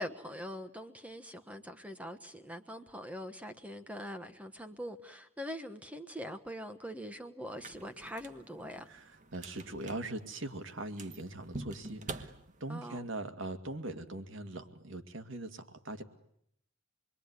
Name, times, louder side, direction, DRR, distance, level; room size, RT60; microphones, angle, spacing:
voice 1, 0.0-8.9 12.7-13.0, equal, 5° right, 7 dB, 1.2 m, -43 dB
sound 1, 7.5-13.0, right 3 dB, 40° right, 1.5 m, -47 dB
voice 2, 8.9-12.3 12.6-16.0, right 2 dB, 65° right, 7 dB, 2.3 m, -41 dB
27.5 x 22.0 x 9.8 m, 0.75 s
head